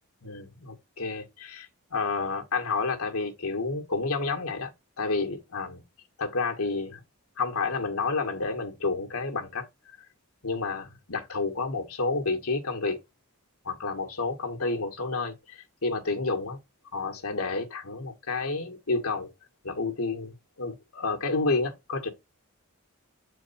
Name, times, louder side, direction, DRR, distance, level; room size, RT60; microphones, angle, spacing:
voice 1, 0.2-5.8 6.2-7.0 7.4-9.7 10.4-13.0 13.6-16.6 16.9-19.3 19.6-22.1, left 3 dB, 80° left, 1.7 m, -30 dB
8.0 x 4.6 x 4.2 m
head